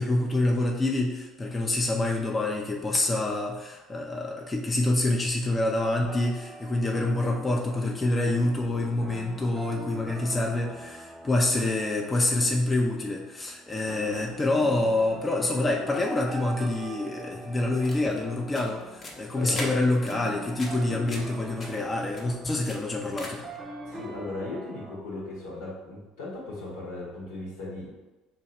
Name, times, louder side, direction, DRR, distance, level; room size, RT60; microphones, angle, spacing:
voice 1, 0.0-23.4, left 2 dB, 25° left, 0 dB, 0.5 m, -27 dB
sound 1, 6.1-25.0, right 1 dB, 15° right, 0.6 m, -43 dB
sound 2, 17.6-23.6, left 1 dB, 40° left, 0.9 m, -43 dB
voice 2, 19.4-19.7 23.8-27.9, left 2 dB, 80° left, -6 dB, 1.2 m, -37 dB
2.9 x 2.8 x 4.2 m, 1.1 s
hypercardioid pair, 65°, 0 cm